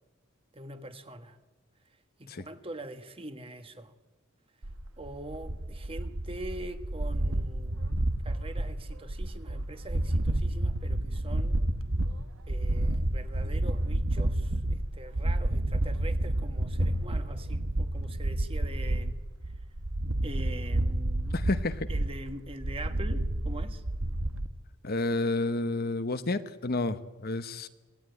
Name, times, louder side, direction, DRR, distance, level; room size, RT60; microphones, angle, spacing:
voice 1, 0.5-1.4 2.2-3.9 5.0-8.0 8.2-11.6 12.5-19.2 20.2-21.4 21.9-23.8, right 1 dB, 25° right, 8 dB, 1.5 m, -43 dB
sound 1, 4.6-24.5, right 1 dB, 70° right, 1.3 m, -30 dB
voice 2, 21.3-21.9 24.8-27.7, left 2 dB, 50° left, 11 dB, 1.0 m, -30 dB
25.5 x 18.0 x 9.5 m, 1.2 s
head